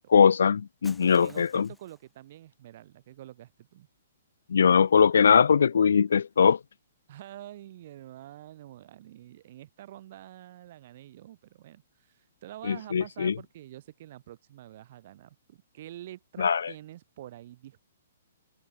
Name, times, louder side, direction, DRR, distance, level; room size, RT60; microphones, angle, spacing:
voice 1, 0.1-1.7 4.5-6.6 12.7-13.3 16.4-16.7, left 6 dB, 75° left, 0.4 m, -21 dB
Shatter, 0.8-2.2, left 1 dB, ahead, 1.6 m, -54 dB
voice 2, 1.2-3.9 7.1-17.9, right 13 dB, 35° right, 6.2 m, -47 dB
hypercardioid pair, 180°, 0 cm